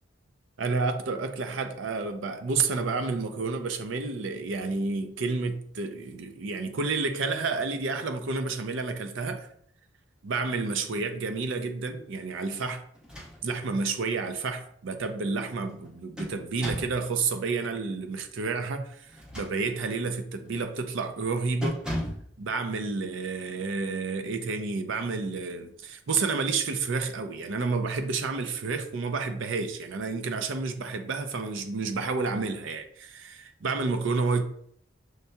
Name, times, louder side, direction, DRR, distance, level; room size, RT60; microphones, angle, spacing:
voice 1, 0.6-9.5 10.2-12.8 13.4-21.8 22.4-34.4, right 4 dB, 80° right, 0.5 m, -30 dB
sound 1, 12.9-13.7 14.1-14.2 15.7-17.0 19.1-20.0 20.5-20.7 21.0-21.2 21.6-22.3, equal, 5° right, 0.8 m, -36 dB
6.5 x 2.7 x 2.2 m
head